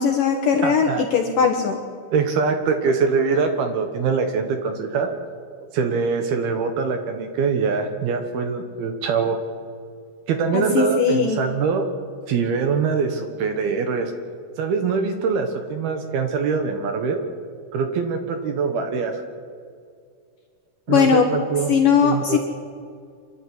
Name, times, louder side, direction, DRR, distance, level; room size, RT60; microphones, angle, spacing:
voice 1, 0.0-1.8 10.5-11.4 20.9-21.3 21.7-22.4, left 6 dB, 75° left, 3 dB, 2.0 m, -19 dB
voice 2, 0.6-1.1 2.1-5.1 5.7-9.4 10.3-11.9 12.3-14.1 14.6-17.2 17.7-19.2 20.9-21.7 22.0-22.4, right 5 dB, 65° right, 6 dB, 2.7 m, -23 dB
25.5 x 12.0 x 9.8 m, 2.2 s
omnidirectional pair, 5.8 m